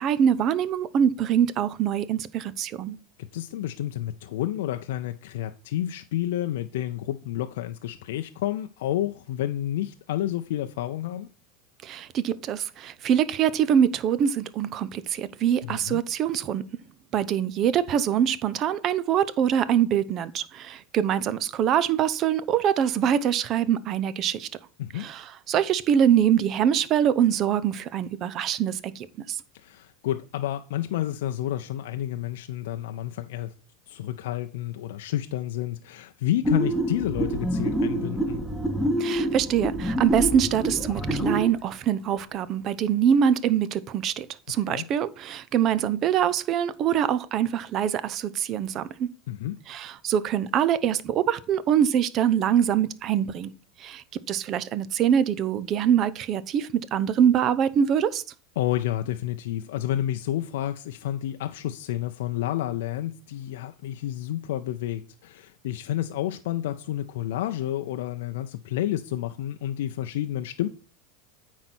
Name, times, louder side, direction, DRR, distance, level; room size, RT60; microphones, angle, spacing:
voice 1, 0.0-3.0 11.8-16.6 17.1-24.5 24.9-29.4 39.0-49.1 49.7-53.5 53.8-58.2, right 9 dB, 45° right, 0.8 m, -24 dB
voice 2, 3.2-11.3 15.6-16.0 24.8-25.1 29.5-33.5 33.9-38.4 44.7-44.9 49.3-49.6 58.6-70.7, left 13 dB, 70° left, 0.5 m, -30 dB
sound 1, 36.4-41.5, right 1 dB, 10° right, 1.6 m, -27 dB
sound 2, 39.4-42.1, left 5 dB, 20° left, 1.0 m, -39 dB
9.0 x 4.2 x 6.1 m
hypercardioid pair, 90°, 0 cm